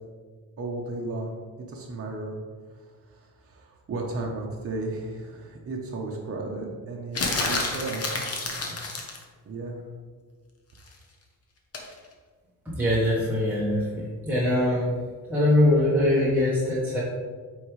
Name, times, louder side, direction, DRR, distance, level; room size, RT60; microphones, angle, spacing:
voice 1, 0.6-2.3 2.7-8.1 8.4-8.8 9.4-9.8, right 2 dB, 40° right, -1 dB, 0.9 m, -34 dB
sound 1, 7.2-9.2 11.7-11.9, left 3 dB, 45° left, 1.1 m, -29 dB
voice 2, 12.6-14.9 15.3-17.0, left 1 dB, 5° right, -8 dB, 1.3 m, -22 dB
8.3 x 3.6 x 3.2 m, 1.5 s
cardioid pair, 95°, 35 cm